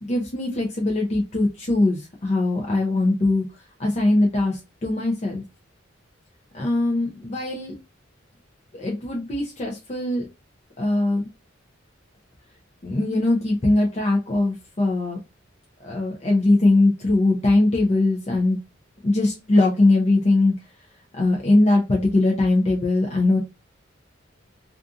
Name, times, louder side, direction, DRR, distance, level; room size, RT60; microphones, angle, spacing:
voice 1, 0.0-5.4 6.5-7.7 8.7-10.3 10.8-11.3 12.8-15.2 15.8-18.6 19.0-20.5 21.1-23.4, left 2 dB, 35° left, -1 dB, 0.5 m, -21 dB
2.5 x 2.5 x 2.4 m, 0.25 s
head